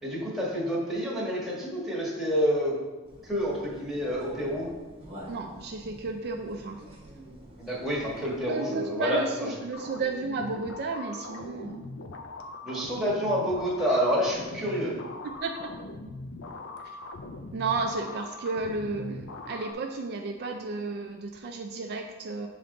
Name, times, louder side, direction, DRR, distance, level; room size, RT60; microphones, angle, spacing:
voice 1, 0.0-2.8 3.2-4.7 7.6-9.5 12.6-14.9, equal, ahead, -6 dB, 1.5 m, -28 dB
sound 1, 3.0-8.4, equal, 30° right, 1.2 m, -47 dB
voice 2, 5.3-6.8 8.5-11.8 15.2-15.5 16.8-17.0 17.5-22.5, right 3 dB, 50° right, 3 dB, 0.4 m, -33 dB
sound 2, 9.7-19.7, left 2 dB, 65° left, 0.6 m, -41 dB
7.3 x 3.4 x 3.8 m, 1.2 s
head